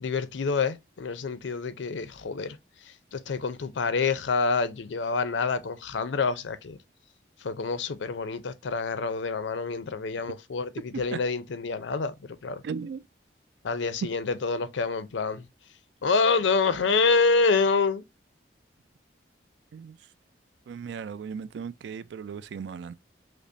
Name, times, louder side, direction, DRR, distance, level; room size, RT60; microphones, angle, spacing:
voice 1, 0.0-2.6 3.1-6.8 7.4-12.1 12.4-12.6 13.6-15.5 16.0-18.0, left 4 dB, 85° left, 0.5 m, -27 dB
voice 2, 12.6-13.0 19.7-20.0 20.7-22.9, right 6 dB, 70° right, 0.3 m, -36 dB
5.1 x 2.0 x 2.5 m
head